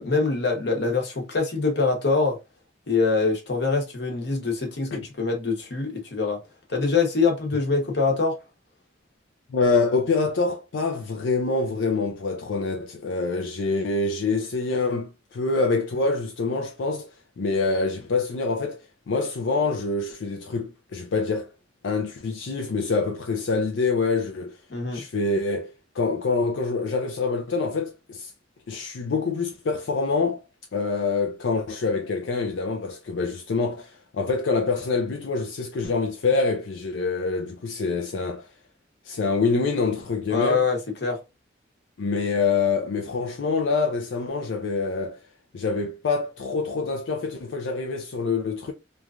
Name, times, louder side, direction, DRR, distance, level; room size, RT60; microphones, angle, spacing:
voice 1, 0.0-2.4 2.9-6.4 6.7-8.4 24.7-25.0 40.3-41.2, left 4 dB, 65° left, 1.0 m, -24 dB
voice 2, 9.5-21.5 21.8-24.6 24.9-28.3 28.7-30.4 30.7-38.5 39.0-40.6 42.0-45.2 45.5-48.7, left 4 dB, 85° left, 0.4 m, -26 dB
3.1 x 2.3 x 2.4 m
head